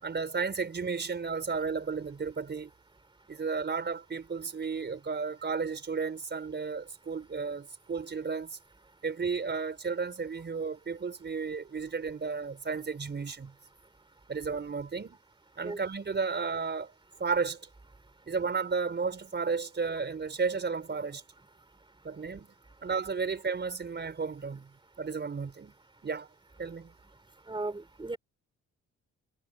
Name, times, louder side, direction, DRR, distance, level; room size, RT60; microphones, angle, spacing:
voice 1, 0.0-2.7 3.3-8.5 9.0-13.5 14.3-15.2 15.6-16.9 17.2-17.7 18.3-21.2 22.0-22.5 22.8-24.7 25.0-25.7 26.0-26.3 26.6-26.9, right 5 dB, 35° right, 4.7 m, -33 dB
voice 2, 27.5-28.2, right 2 dB, 15° right, 4.3 m, -36 dB
cardioid pair, 90°, 30 cm